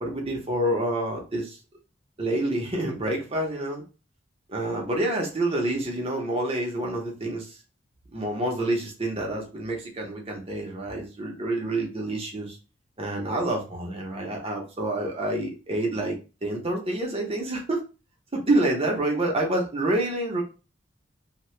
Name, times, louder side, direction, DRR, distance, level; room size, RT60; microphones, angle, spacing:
voice 1, 0.0-1.6 2.2-3.8 4.5-7.6 8.1-12.6 13.0-17.8 18.3-20.4, right 1 dB, 35° right, 0 dB, 0.8 m, -28 dB
2.8 x 2.2 x 3.2 m, 0.32 s
head